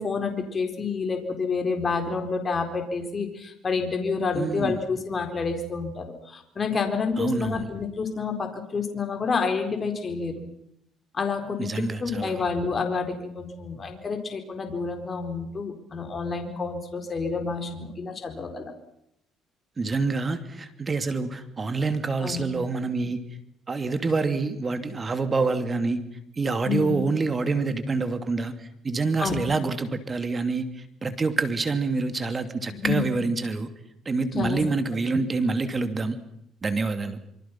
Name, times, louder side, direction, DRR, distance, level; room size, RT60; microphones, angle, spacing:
voice 1, 0.0-10.4 11.1-18.7 22.2-22.4 26.7-27.1 29.2-29.4 32.7-33.1 34.3-34.6, left 4 dB, 35° left, 5 dB, 4.4 m, -29 dB
voice 2, 4.3-4.8 7.2-7.7 11.6-12.4 19.8-23.2 23.7-26.0 26.4-33.7 34.0-36.2 36.6-37.2, right 3 dB, 30° right, 9 dB, 2.7 m, -27 dB
26.5 x 24.5 x 6.0 m, 0.76 s
cardioid pair, 100°, 0 cm